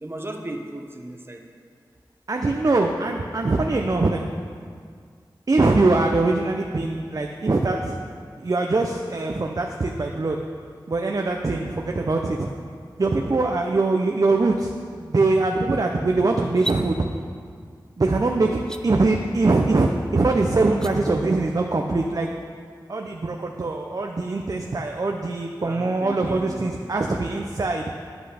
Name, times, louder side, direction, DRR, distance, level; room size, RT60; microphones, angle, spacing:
voice 1, 0.0-1.4 25.6-26.8, right 1 dB, 30° right, 3 dB, 1.0 m, -36 dB
voice 2, 2.3-4.3 5.5-8.0 8.4-10.4 10.9-12.5 13.0-17.0 18.0-22.3 22.9-27.8, right 3 dB, 50° right, 2 dB, 0.6 m, -22 dB
sound 1, 16.5-16.8 18.6-18.8 20.6-20.9, right 1 dB, 10° left, 0.5 m, -32 dB
9.8 x 8.1 x 5.0 m, 2.1 s
wide cardioid pair, 70°, 8 cm